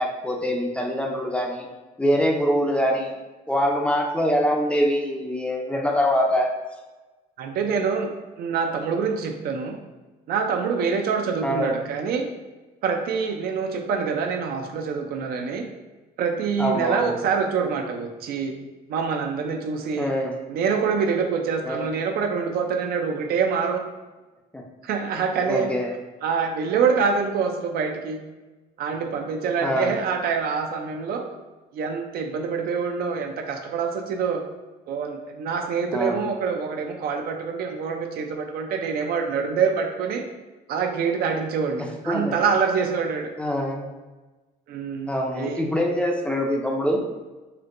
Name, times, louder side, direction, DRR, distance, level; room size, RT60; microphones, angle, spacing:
voice 1, 0.0-1.7 2.0-3.1 3.5-6.5 11.4-11.8 16.6-17.1 20.0-20.4 21.7-21.9 24.5-24.6 25.5-25.9 29.6-29.9 35.9-36.3 42.1-42.3 43.4-43.9 45.1-47.0, equal, 5° left, 0 dB, 0.4 m, -24 dB
voice 2, 7.4-8.1 8.4-9.8 10.3-12.3 12.8-15.7 16.2-18.5 18.9-20.1 20.5-23.8 24.8-25.7 26.2-28.2 28.8-31.3 31.7-34.4 34.9-40.3 40.7-43.3 44.7-45.1 45.4-45.6, right 5 dB, 65° right, 4 dB, 0.4 m, -25 dB
4.3 x 2.1 x 2.5 m, 1.2 s
cardioid pair, 110°, 17 cm